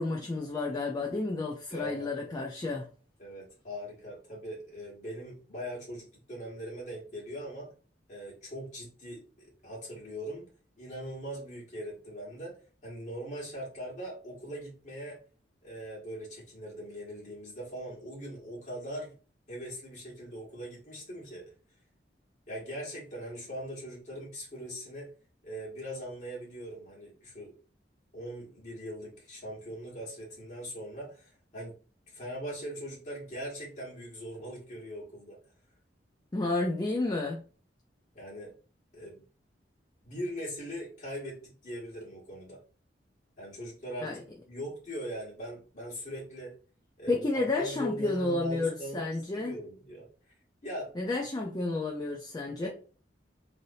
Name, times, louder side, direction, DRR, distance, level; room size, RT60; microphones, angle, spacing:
voice 1, 0.0-2.9 36.3-37.4 44.0-44.2 47.1-49.6 51.0-52.7, left 2 dB, 20° left, 0.4 m, -31 dB
voice 2, 1.7-2.5 3.2-7.7 8.1-10.5 10.8-12.6 12.8-15.2 15.6-19.1 19.5-21.5 22.5-25.1 25.4-27.5 28.1-31.7 32.1-35.4 38.1-38.5 38.9-39.2 40.0-42.6 43.4-46.5 47.0-49.1 49.3-50.1 50.6-50.9 52.6-52.7, equal, 40° left, 1.5 m, -41 dB
3.3 x 2.7 x 2.7 m
head